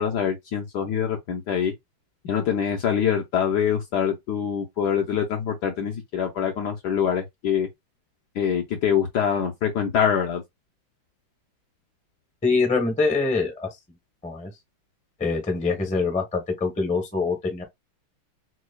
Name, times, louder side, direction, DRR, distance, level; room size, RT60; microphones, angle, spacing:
voice 1, 0.0-1.7 2.2-7.7 8.3-10.4, left 8 dB, 70° left, 1.0 m, -24 dB
voice 2, 12.4-13.7 14.2-14.5 15.2-17.6, left 4 dB, 10° left, 0.4 m, -24 dB
6.1 x 2.2 x 2.2 m
omnidirectional pair, 2.3 m